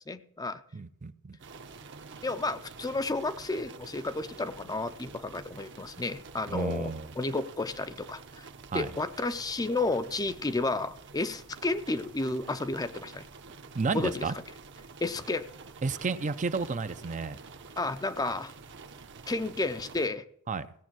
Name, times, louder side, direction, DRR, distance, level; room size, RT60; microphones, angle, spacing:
voice 1, 0.1-0.6 2.2-8.5 8.7-13.3 13.9-14.3 15.0-15.5 17.8-18.5 19.3-20.2, left 2 dB, 15° left, 11 dB, 0.5 m, -32 dB
voice 2, 0.7-1.4 6.5-7.1 8.7-8.9 13.7-14.3 15.8-17.4 20.5-20.7, right 4 dB, 35° right, 12 dB, 0.5 m, -31 dB
sound 1, 1.4-20.1, right 4 dB, 55° right, 1.0 m, -48 dB
17.0 x 7.3 x 6.1 m, 0.67 s
head